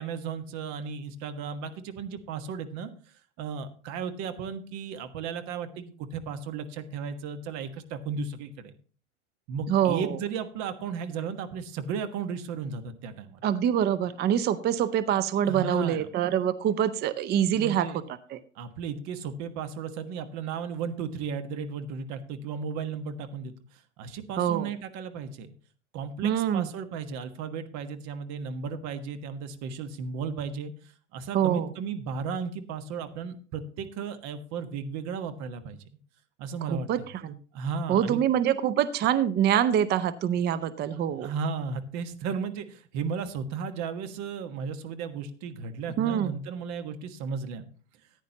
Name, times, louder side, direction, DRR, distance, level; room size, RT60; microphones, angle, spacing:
voice 1, 0.0-2.9 3.4-8.7 9.5-13.5 15.4-16.1 17.5-18.0 18.5-25.5 25.9-35.8 36.4-36.9 37.5-38.2 41.2-47.6, right 6 dB, 45° right, 9 dB, 1.5 m, -35 dB
voice 2, 9.7-10.2 13.4-17.9 18.3-18.4 24.4-24.7 26.2-26.7 31.3-31.7 36.7-37.4 37.9-41.3 46.0-46.3, right 10 dB, 25° right, 15 dB, 0.7 m, -25 dB
14.5 x 9.9 x 2.9 m, 0.39 s
hypercardioid pair, 90°, 38 cm